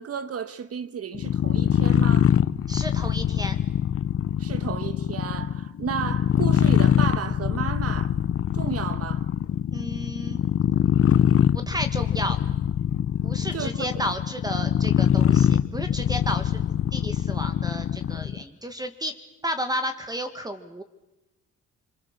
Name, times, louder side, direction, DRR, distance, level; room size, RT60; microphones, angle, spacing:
voice 1, 0.0-2.3 4.4-8.1 8.5-9.3 13.5-14.0, right 7 dB, 50° right, 1.5 m, -33 dB
sound 1, 1.1-18.4, left 10 dB, 50° left, 0.8 m, -23 dB
voice 2, 2.7-3.6 9.7-10.4 11.5-12.4 13.2-16.6 16.9-19.1 19.4-20.8, equal, 15° right, 1.6 m, -32 dB
29.0 x 22.5 x 6.7 m
cardioid pair, 90°, 30 cm